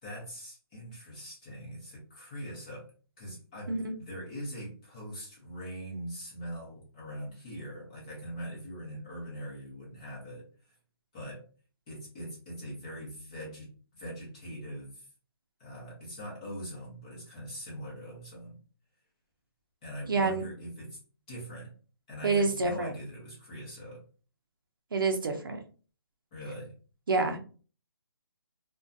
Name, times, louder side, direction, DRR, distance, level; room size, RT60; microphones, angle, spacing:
voice 1, 0.0-2.9 3.2-10.5 11.1-11.4 11.9-15.1 15.6-18.6 19.8-21.0 21.3-21.7 22.1-24.0 26.3-26.7, equal, 15° left, -5 dB, 0.8 m, -42 dB
voice 2, 20.1-20.4 22.2-22.9 24.9-25.6 27.1-27.4, right 3 dB, 55° right, 4 dB, 0.6 m, -27 dB
2.4 x 2.2 x 2.5 m, 0.37 s
hypercardioid pair, 170°, 13 cm